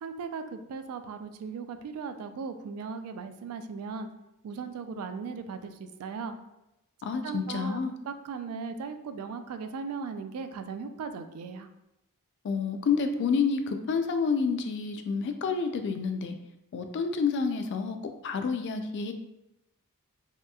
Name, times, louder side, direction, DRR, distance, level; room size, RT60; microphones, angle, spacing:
voice 1, 0.0-4.1 4.4-6.4 7.2-7.8 8.1-11.7, right 5 dB, 70° right, 10 dB, 0.3 m, -37 dB
voice 2, 7.0-7.9 12.4-16.3 16.7-18.0 18.2-19.1, left 5 dB, 55° left, 7 dB, 0.3 m, -29 dB
3.2 x 2.8 x 2.3 m, 0.89 s
head